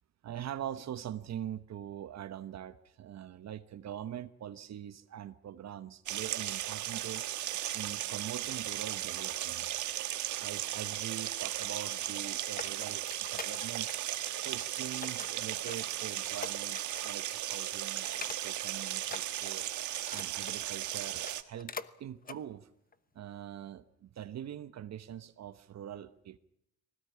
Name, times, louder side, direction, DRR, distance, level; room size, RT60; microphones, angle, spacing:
voice 1, 0.2-7.2 7.7-9.7 10.4-19.7 20.1-21.7 22.0-22.7 23.1-26.4, right 10 dB, 60° right, 13 dB, 1.1 m, -43 dB
sound 1, 6.1-21.4, right 12 dB, 75° right, 1.4 m, -36 dB
sound 2, 12.0-14.0 14.3-14.6 15.0-17.2 17.5-17.7 18.1-18.7 19.0-20.6 21.1-21.9 22.2-22.4 22.9-23.0, left 5 dB, 30° left, 1.0 m, -45 dB
20.5 x 18.0 x 9.7 m, 0.74 s
cardioid pair, 90°, 30 cm